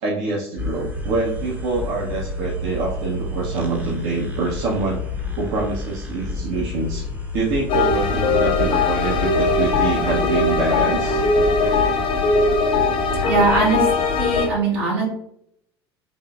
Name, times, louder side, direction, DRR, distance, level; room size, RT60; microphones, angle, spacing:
voice 1, 0.0-5.0 5.4-7.0 7.3-11.2, right 3 dB, 50° right, -3 dB, 0.7 m, -25 dB
sound 1, 0.6-11.9, left 3 dB, 10° right, 0.7 m, -30 dB
sound 2, 7.7-14.5, left 3 dB, 40° left, 0.6 m, -20 dB
voice 2, 13.3-13.9 14.2-15.0, right 3 dB, 70° right, -4 dB, 1.4 m, -20 dB
3.4 x 3.1 x 2.3 m, 0.71 s
figure-of-eight pair, 70°, 14 cm